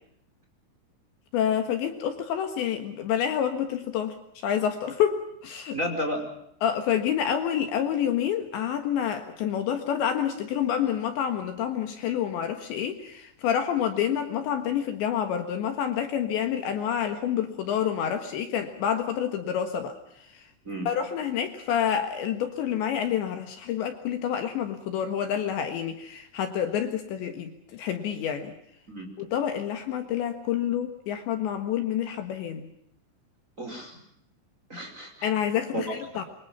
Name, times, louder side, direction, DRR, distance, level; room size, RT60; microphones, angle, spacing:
voice 1, 1.3-4.2 4.4-5.8 6.6-20.5 20.9-28.5 29.2-32.7 35.2-36.2, left 9 dB, 65° left, 7 dB, 3.6 m, -28 dB
voice 2, 5.7-6.3 20.6-20.9 28.9-29.1 33.6-34.0 34.7-35.3 35.7-35.8, equal, 15° right, 3 dB, 4.8 m, -32 dB
27.5 x 24.0 x 5.6 m, 0.73 s
omnidirectional pair, 5.9 m